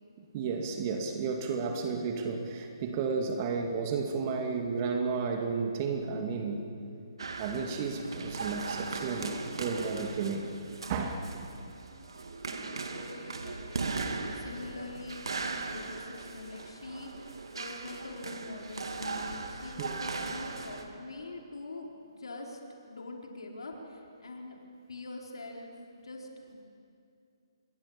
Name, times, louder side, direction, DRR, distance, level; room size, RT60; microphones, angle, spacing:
voice 1, 0.2-6.7 7.4-9.3 9.6-10.5 10.9-11.3 19.8-20.0, right 5 dB, 35° right, 4 dB, 2.4 m, -32 dB
sound 1, 7.2-20.8, right 4 dB, 75° right, 2.7 m, -38 dB
voice 2, 12.4-22.6 22.8-24.6 24.9-26.7, left 2 dB, 80° left, 0 dB, 4.3 m, -44 dB
27.0 x 23.0 x 7.3 m, 2.5 s
hypercardioid pair, 150°, 3 cm